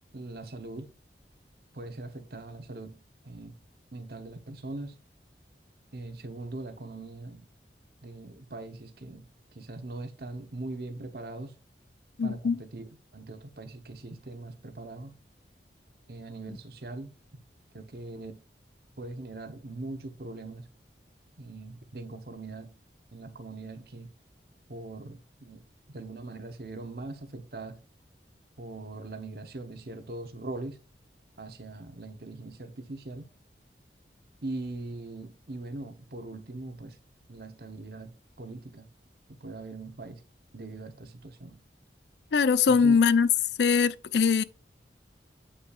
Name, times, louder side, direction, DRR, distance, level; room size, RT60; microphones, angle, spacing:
voice 1, 0.1-0.9 1.7-3.0 3.2-3.6 3.9-4.9 5.9-7.4 8.0-9.3 9.5-11.5 12.2-15.1 16.1-17.1 17.7-18.3 19.0-20.7 21.4-22.7 23.1-24.1 24.7-25.6 25.9-27.8 28.6-30.8 31.4-33.3 34.4-37.0 37.3-38.1 38.4-38.9 39.4-40.2 40.5-41.6 42.7-43.0, right 2 dB, 60° right, 0.9 m, -41 dB
voice 2, 12.2-12.6 42.3-43.3 43.6-44.4, left 5 dB, 75° left, 0.4 m, -22 dB
8.2 x 5.6 x 2.4 m
head